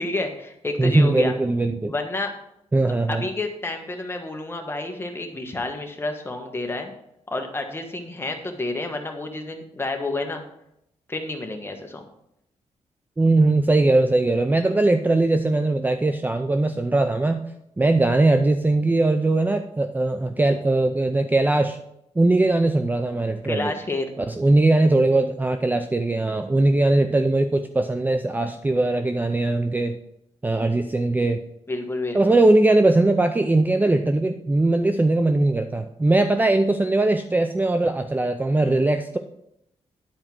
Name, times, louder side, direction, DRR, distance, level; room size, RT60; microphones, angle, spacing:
voice 1, 0.0-1.3 1.9-2.3 3.1-6.9 7.3-10.4 11.1-12.0 23.4-24.1 31.7-32.4, left 2 dB, 20° left, 3 dB, 1.3 m, -29 dB
voice 2, 0.8-1.9 2.7-3.3 13.2-17.4 17.8-21.8 22.2-23.7 24.2-30.0 30.4-31.4 32.1-39.2, right 2 dB, 15° right, 7 dB, 0.5 m, -20 dB
10.0 x 4.5 x 6.0 m, 0.79 s
cardioid pair, 110°, 12 cm